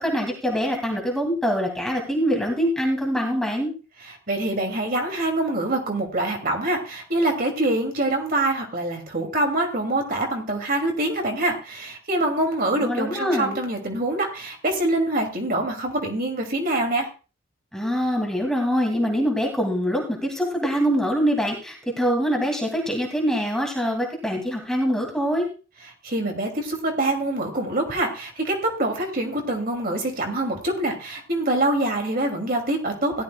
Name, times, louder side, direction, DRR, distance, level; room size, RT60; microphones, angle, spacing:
voice 1, 0.0-3.7 12.8-13.6 17.7-25.5, equal, 5° left, 0 dB, 2.4 m, -24 dB
voice 2, 4.0-17.1 26.0-33.2, right 1 dB, 45° right, 3 dB, 2.6 m, -25 dB
17.0 x 12.0 x 2.3 m, 0.34 s
head